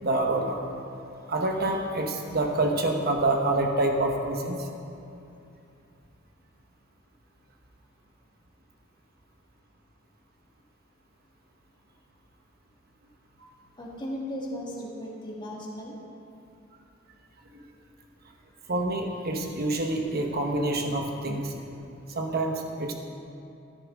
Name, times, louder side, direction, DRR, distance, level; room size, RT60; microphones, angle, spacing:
voice 1, 0.0-0.6 1.3-4.6 18.7-21.5 22.1-22.9, right 2 dB, 50° right, 3 dB, 1.0 m, -27 dB
voice 2, 13.8-15.9, equal, 25° left, -3 dB, 1.7 m, -36 dB
13.5 x 10.0 x 3.6 m, 2.6 s
head